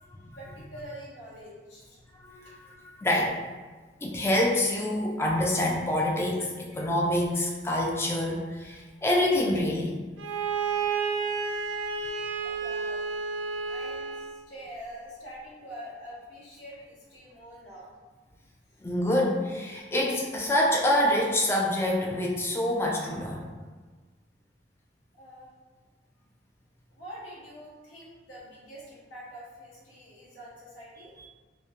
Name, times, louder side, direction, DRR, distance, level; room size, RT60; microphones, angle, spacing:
voice 1, 0.3-2.0 2.4-2.6 12.3-13.0 13.6-17.9 18.7-18.8 25.2-25.5 26.9-31.1, equal, 85° left, -7 dB, 0.8 m, -45 dB
voice 2, 2.1-3.4 4.0-10.0 18.8-23.5, left 1 dB, 15° left, -2 dB, 0.3 m, -26 dB
Bowed string instrument, 10.2-14.4, right 5 dB, 90° right, 0.3 m, -31 dB
2.2 x 2.1 x 2.8 m, 1.4 s
head